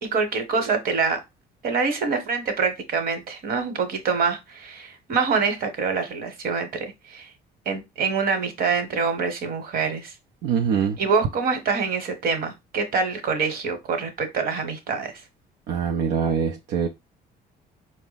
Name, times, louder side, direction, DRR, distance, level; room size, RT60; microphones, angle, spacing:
voice 1, 0.0-1.2 1.6-7.3 7.6-10.1 11.0-15.2, right 5 dB, 60° right, 1.1 m, -25 dB
voice 2, 10.4-11.0 15.7-16.9, right 7 dB, 85° right, 0.5 m, -23 dB
4.6 x 2.1 x 3.9 m
cardioid pair, 110°, 17 cm